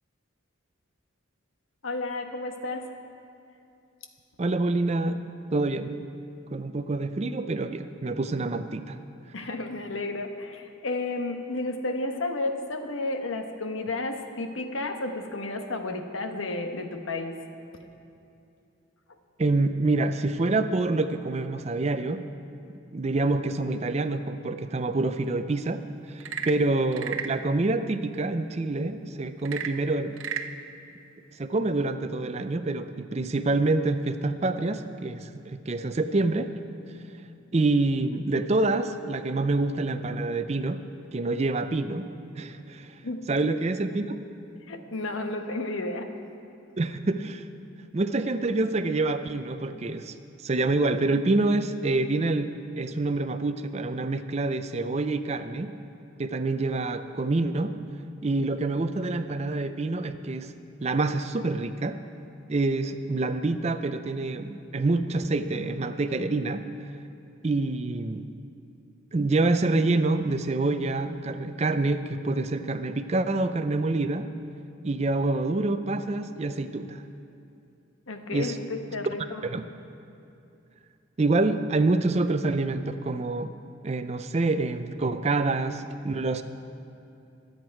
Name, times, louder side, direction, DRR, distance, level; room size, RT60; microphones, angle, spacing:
voice 1, 1.8-2.9 9.3-17.4 17.7-17.8 43.0-43.2 44.7-46.1 78.1-79.5, left 2 dB, 80° left, 5 dB, 1.1 m, -32 dB
voice 2, 4.4-5.2 5.5-6.0 6.5-9.0 19.4-22.2 22.9-25.8 26.1-30.2 31.4-36.5 37.5-40.8 41.1-42.1 42.4-43.0 43.3-44.2 46.8-47.5 47.9-50.1 50.4-55.7 56.2-57.7 58.2-60.5 60.8-62.0 62.5-66.6 67.4-68.3 69.1-74.3 74.8-77.0 78.3-78.6 79.4-79.6 81.2-83.5 83.8-86.4, right 2 dB, 30° right, 10 dB, 0.5 m, -27 dB
Frog / Percussion / Wood, 26.1-27.4 29.4-30.5, right 7 dB, 80° right, 0.7 m, -33 dB
24.0 x 8.0 x 4.6 m, 2.7 s
head